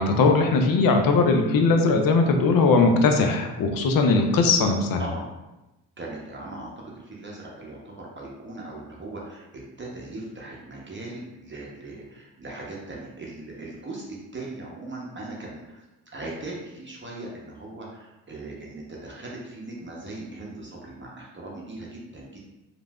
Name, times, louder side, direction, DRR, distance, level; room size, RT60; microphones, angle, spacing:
voice 1, 0.0-5.0, left 3 dB, 55° left, 4 dB, 0.5 m, -20 dB
voice 2, 6.0-15.8 16.1-22.4, right 2 dB, 25° right, -4 dB, 0.7 m, -39 dB
3.1 x 2.5 x 2.2 m, 0.99 s
supercardioid pair, 60°, 43 cm